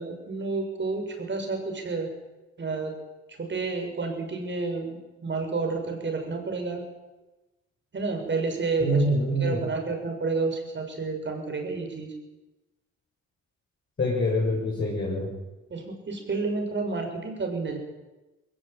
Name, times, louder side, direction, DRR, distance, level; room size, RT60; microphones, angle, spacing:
voice 1, 0.0-2.1 2.6-3.0 3.3-6.8 7.9-12.1 15.7-17.8, right 3 dB, 40° right, 3 dB, 6.8 m, -30 dB
voice 2, 8.8-9.6 14.0-15.3, equal, 40° left, -5 dB, 7.0 m, -25 dB
21.0 x 17.5 x 9.2 m, 1.1 s
cardioid pair, 90°, 30 cm